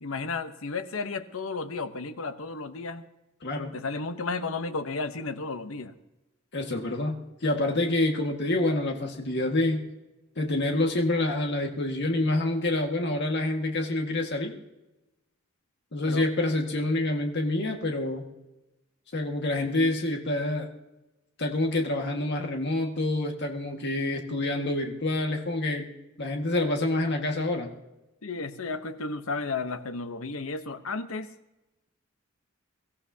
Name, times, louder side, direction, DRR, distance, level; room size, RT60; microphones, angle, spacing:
voice 1, 0.0-3.0 3.7-5.9 16.0-16.3 28.2-31.3, left 3 dB, 80° left, 10 dB, 1.0 m, -33 dB
voice 2, 3.4-3.7 6.5-9.9 10.4-14.5 15.9-18.2 19.1-20.7 21.4-25.9 26.2-27.7, left 2 dB, 55° left, 2 dB, 1.8 m, -27 dB
23.0 x 14.5 x 2.8 m, 0.99 s
head